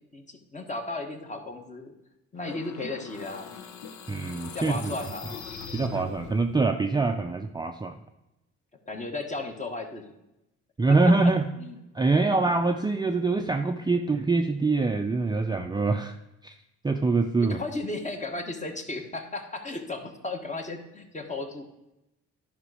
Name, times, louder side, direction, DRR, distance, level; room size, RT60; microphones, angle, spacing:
voice 1, 0.0-1.9 2.3-3.5 4.5-5.5 8.9-10.1 11.6-11.8 17.5-21.6, left 2 dB, 25° left, 5 dB, 1.3 m, -35 dB
sound 1, 2.4-6.6, left 5 dB, 75° left, 0.9 m, -41 dB
voice 2, 4.1-5.0 5.7-7.9 10.8-11.5 11.9-16.2 16.4-16.5 16.8-17.6, right 3 dB, 15° right, 5 dB, 0.5 m, -24 dB
10.5 x 5.2 x 4.9 m, 0.92 s
cardioid pair, 90°, 30 cm